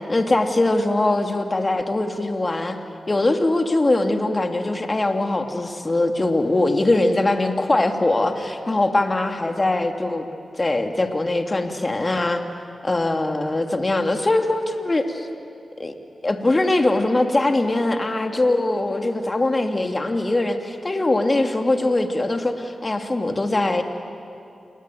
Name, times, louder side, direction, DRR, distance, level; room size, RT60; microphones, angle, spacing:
voice 1, 0.1-2.8 3.1-10.3 10.6-12.4 12.8-15.3 15.8-15.9 16.2-23.8, left 2 dB, 35° left, 5 dB, 2.7 m, -21 dB
28.0 x 21.0 x 9.3 m, 2.6 s
cardioid pair, 45°, 0 cm